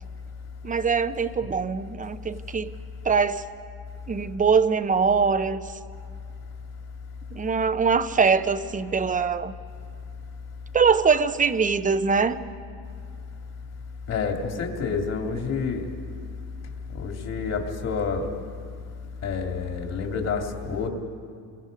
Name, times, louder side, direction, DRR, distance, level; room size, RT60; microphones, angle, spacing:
voice 1, 0.6-2.7 3.0-3.4 4.1-5.6 7.3-9.5 10.7-12.4, right 5 dB, 20° right, 12 dB, 0.8 m, -22 dB
voice 2, 14.1-15.8 16.9-18.3 19.2-20.9, left 5 dB, 40° left, 3 dB, 2.6 m, -28 dB
28.5 x 23.0 x 5.2 m, 2.2 s
cardioid pair, 120°, 38 cm